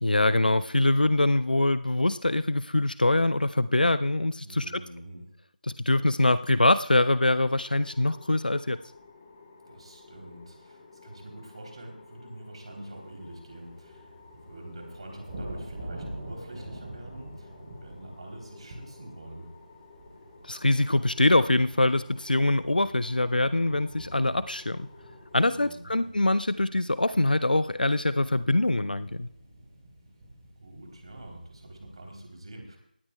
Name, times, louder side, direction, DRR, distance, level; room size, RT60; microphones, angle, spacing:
voice 1, 0.0-4.7 5.9-8.8 20.4-24.9 25.3-29.3, left 2 dB, 70° left, 15 dB, 0.5 m, -24 dB
voice 2, 4.4-5.3 9.7-19.5 25.3-26.1 30.6-32.8, right 1 dB, 40° right, 1 dB, 3.3 m, -45 dB
sound 1, 7.3-25.7, left 4 dB, 20° left, 1.5 m, -53 dB
sound 2, 12.7-32.2, right 1 dB, 25° right, 3.6 m, -46 dB
18.5 x 13.0 x 2.3 m, 0.72 s
figure-of-eight pair, 165°, 5 cm